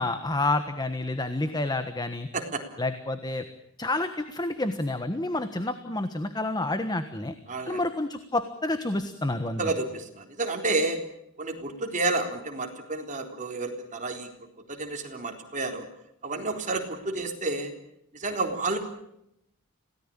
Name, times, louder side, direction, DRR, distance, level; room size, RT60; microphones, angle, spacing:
voice 1, 0.0-2.3 2.8-3.4 3.8-7.3 7.7-9.7, left 2 dB, 20° left, 9 dB, 1.3 m, -29 dB
voice 2, 7.5-7.8 9.6-11.0 11.4-14.3 14.7-15.9 16.2-17.7 18.1-18.8, right 3 dB, 35° right, 4 dB, 3.9 m, -30 dB
26.5 x 18.0 x 8.9 m, 0.79 s
head